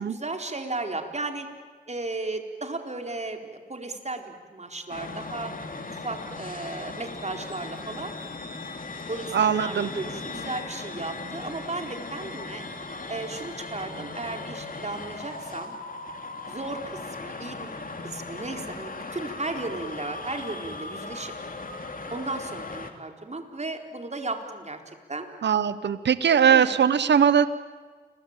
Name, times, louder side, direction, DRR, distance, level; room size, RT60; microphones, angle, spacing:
voice 1, 0.0-1.5 1.9-5.5 5.9-8.1 9.1-12.6 13.1-15.7 16.5-17.7 18.0-21.3 22.1-24.8 25.1-25.3 26.4-26.7, right 2 dB, 40° right, 4 dB, 4.3 m, -35 dB
sound 1, 4.9-22.9, left 3 dB, 50° left, 3.0 m, -38 dB
voice 2, 9.3-9.9 25.4-27.5, right 8 dB, 80° right, 14 dB, 0.9 m, -20 dB
30.0 x 22.0 x 9.0 m, 1.5 s
cardioid pair, 50°, 18 cm